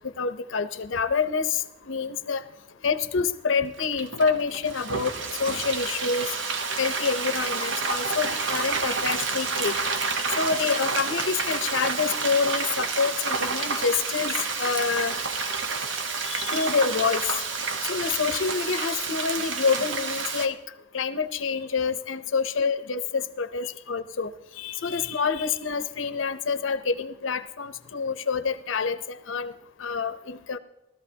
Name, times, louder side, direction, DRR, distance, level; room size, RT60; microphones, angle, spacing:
voice 1, 0.2-1.5 1.9-2.4 2.8-5.1 5.4-6.3 6.8-9.8 10.4-15.1 16.3-17.2 17.9-20.6 20.9-24.3 24.6-29.5 29.8-30.6, left 5 dB, 90° left, 12 dB, 0.7 m, -27 dB
Frying (food), 3.8-20.5, right 4 dB, 75° right, 1.0 m, -29 dB
17.5 x 13.5 x 2.8 m, 0.94 s
head